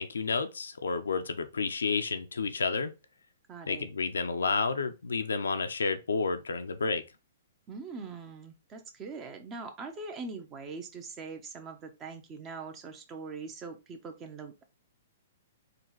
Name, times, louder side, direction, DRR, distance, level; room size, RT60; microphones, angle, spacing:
voice 1, 0.0-2.9 3.7-7.0, left 4 dB, 90° left, 0.6 m, -30 dB
voice 2, 3.5-3.9 7.7-14.6, right 4 dB, 25° right, 0.9 m, -42 dB
3.9 x 2.4 x 4.6 m
hypercardioid pair, 135°, 0 cm